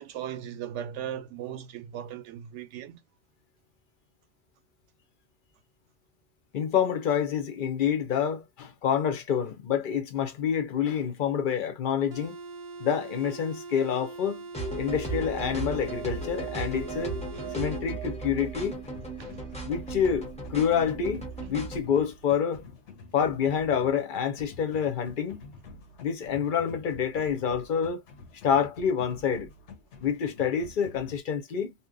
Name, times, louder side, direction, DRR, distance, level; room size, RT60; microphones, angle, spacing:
voice 1, 0.0-3.0 17.3-17.5 19.2-19.5, right 10 dB, 90° right, 0.9 m, -38 dB
voice 2, 6.5-12.4 12.8-14.5 14.8-17.2 17.5-18.8 19.6-22.6 23.1-25.4 26.0-28.0 28.4-29.5 30.0-31.7, left 7 dB, 55° left, 0.7 m, -27 dB
sound 1, 12.1-17.9, right 4 dB, 50° right, 0.5 m, -42 dB
sound 2, 14.5-21.8, right 3 dB, 5° left, 0.6 m, -36 dB
sound 3, 16.4-31.2, left 4 dB, 80° left, 1.1 m, -48 dB
2.8 x 2.1 x 3.7 m
omnidirectional pair, 1.2 m